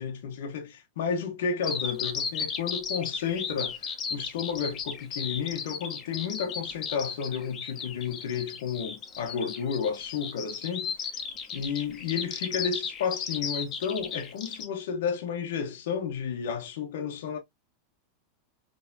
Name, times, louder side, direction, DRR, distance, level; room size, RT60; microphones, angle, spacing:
voice 1, 0.0-11.1 11.5-17.4, left 6 dB, 75° left, 0.9 m, -32 dB
Bird vocalization bird call bird song, 1.6-14.7, left 6 dB, 35° left, 1.1 m, -35 dB
4.2 x 3.2 x 2.6 m
supercardioid pair, 125°, 0 cm